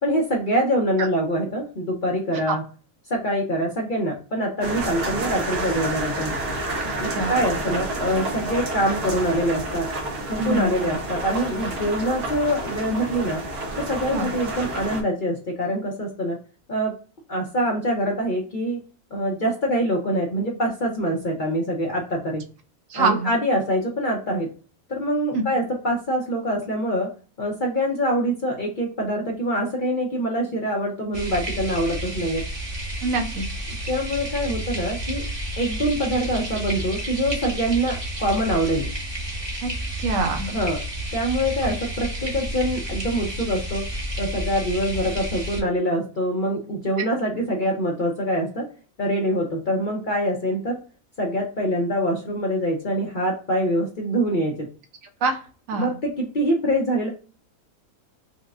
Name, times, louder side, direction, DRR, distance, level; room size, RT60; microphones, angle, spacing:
voice 1, 0.0-2.6 3.1-6.3 7.0-9.9 10.3-13.4 13.8-16.4 16.7-16.9 17.3-18.8 19.1-22.4 22.9-24.5 24.9-27.1 27.4-32.5 33.9-35.2 35.6-38.9 40.5-40.8 41.1-43.8 44.2-48.7 49.0-50.8 51.2-54.7 55.7-57.1, equal, 45° left, -1 dB, 0.7 m, -24 dB
sound 1, 4.6-15.0, right 1 dB, 85° right, 1.5 m, -29 dB
voice 2, 6.8-7.4 10.4-10.7 14.1-14.3 22.9-23.3 25.3-25.4 33.0-33.4 39.6-39.7 40.0-40.5 55.2-55.9, right 3 dB, 70° right, 5 dB, 0.9 m, -25 dB
sound 2, 31.1-45.6, right 1 dB, 20° right, 0.8 m, -31 dB
4.7 x 2.1 x 2.3 m, 0.37 s
omnidirectional pair, 1.5 m